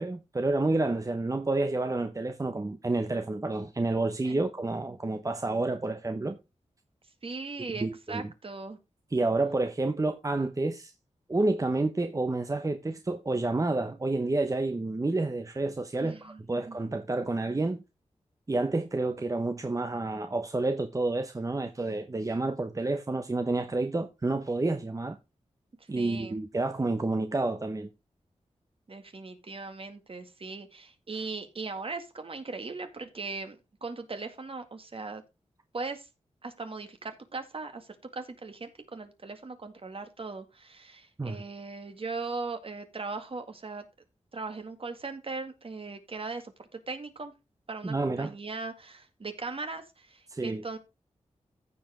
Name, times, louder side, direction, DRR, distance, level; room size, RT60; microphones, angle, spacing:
voice 1, 0.0-6.4 7.8-8.2 9.1-10.9 11.3-17.8 18.5-25.2 25.9-27.9 31.1-31.3 41.2-41.4 47.8-48.4 50.3-50.6, right 2 dB, 30° right, 0.9 m, -29 dB
voice 2, 7.2-8.8 16.0-16.8 26.0-26.4 28.9-35.2 35.7-36.1 36.4-43.8 44.3-47.3 47.7-50.8, right 3 dB, 50° right, 2.0 m, -39 dB
15.0 x 5.0 x 3.7 m
wide cardioid pair, 75°, 12 cm